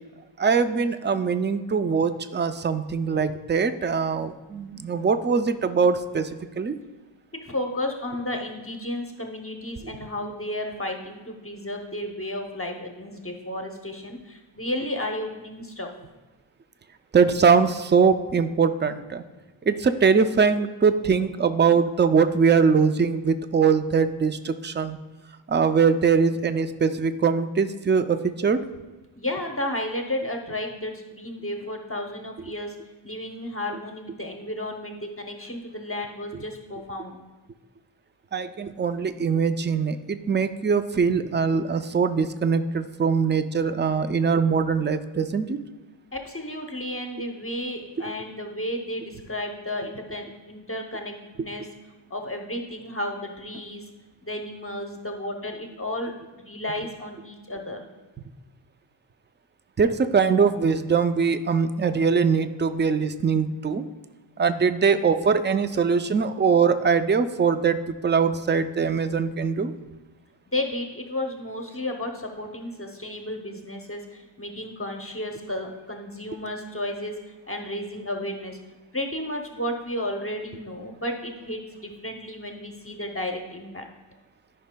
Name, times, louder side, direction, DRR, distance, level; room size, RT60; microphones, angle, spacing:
voice 1, 0.4-6.3 6.6-6.7 9.8-9.9 17.1-19.2 19.7-25.0 25.5-28.6 38.3-45.6 59.8-63.9 64.4-67.8 68.0-69.7, right 5 dB, 25° right, 11 dB, 0.3 m, -22 dB
voice 2, 7.4-15.9 29.2-32.7 33.0-37.2 46.1-51.7 52.1-53.8 54.2-57.8 70.5-77.1 77.5-78.6 78.9-83.9, left 1 dB, 25° left, 3 dB, 0.7 m, -33 dB
13.5 x 5.4 x 2.2 m, 1.2 s
wide cardioid pair, 80°, 50 cm